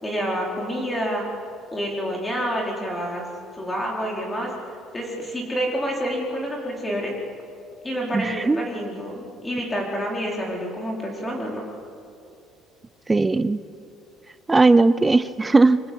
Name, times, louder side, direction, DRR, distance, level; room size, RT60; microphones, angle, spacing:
voice 1, 0.0-1.2 1.7-3.3 3.5-4.5 4.9-7.1 7.8-11.6, equal, 10° left, -1 dB, 4.6 m, -28 dB
voice 2, 8.1-8.7 13.1-13.6 14.5-15.8, right 3 dB, 10° right, 15 dB, 0.6 m, -18 dB
27.0 x 24.5 x 8.0 m, 2.5 s
cardioid pair, 170°, 0 cm